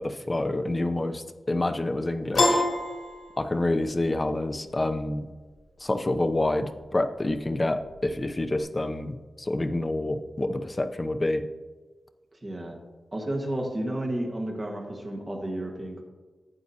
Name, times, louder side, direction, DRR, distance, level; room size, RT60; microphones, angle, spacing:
voice 1, 0.0-2.6 3.4-5.3 5.8-11.5, left 2 dB, 25° left, 8 dB, 0.5 m, -28 dB
Piano, 2.3-3.9, left 2 dB, 65° left, 2.3 m, -25 dB
voice 2, 12.4-12.8 13.1-16.0, right 1 dB, 25° right, 1 dB, 1.4 m, -32 dB
12.0 x 8.3 x 2.7 m, 1.3 s
wide cardioid pair, 140°, 0 cm